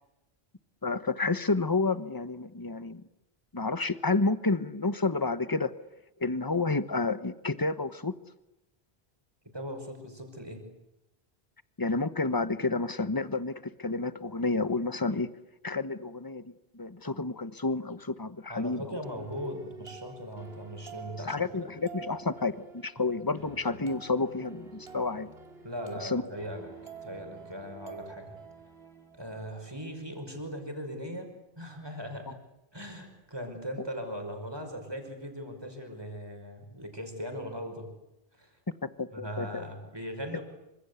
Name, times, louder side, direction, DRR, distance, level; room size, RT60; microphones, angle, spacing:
voice 1, 0.8-3.0 3.5-5.7 6.2-8.1 11.8-13.5 13.8-15.3 15.6-19.0 21.3-22.5 22.8-25.3 26.0-26.2 38.8-39.6, left 3 dB, 20° left, 13 dB, 1.1 m, -30 dB
voice 2, 9.5-10.7 18.5-21.7 23.0-23.1 25.6-26.7 27.0-28.4 29.2-32.4 32.7-37.9 38.4-38.6 39.1-40.4, equal, 25° right, 5 dB, 5.7 m, -39 dB
sound 1, 19.0-30.0, right 5 dB, 75° right, 2.9 m, -48 dB
27.0 x 26.0 x 8.3 m, 0.91 s
omnidirectional pair, 1.1 m